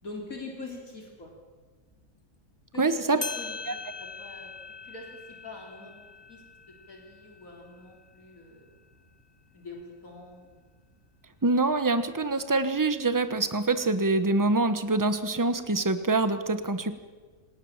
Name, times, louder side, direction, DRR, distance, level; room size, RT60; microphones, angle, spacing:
voice 1, 0.0-1.3 2.7-5.9 6.3-6.4 6.9-8.8 9.5-10.7, left 2 dB, 75° left, 0 dB, 3.9 m, -44 dB
voice 2, 2.8-3.2 11.4-16.9, right 3 dB, 15° right, 11 dB, 1.2 m, -25 dB
sound 1, 2.9-3.0 3.2-8.3, left 4 dB, 25° left, 0.7 m, -41 dB
28.0 x 18.0 x 7.4 m, 1.4 s
omnidirectional pair, 1.5 m